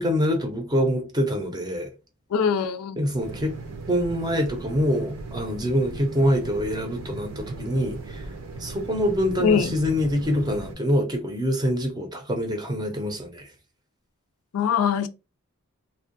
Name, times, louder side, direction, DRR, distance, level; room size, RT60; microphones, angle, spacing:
voice 1, 0.0-1.9 3.0-3.6 3.9-8.3 8.6-13.5, equal, 20° right, 0.6 m, -25 dB
voice 2, 2.3-3.0 9.4-9.7 14.5-15.1, left 7 dB, 80° left, 0.4 m, -22 dB
sound 1, 3.2-10.8, right 3 dB, 70° right, 0.7 m, -38 dB
2.6 x 2.2 x 2.6 m
head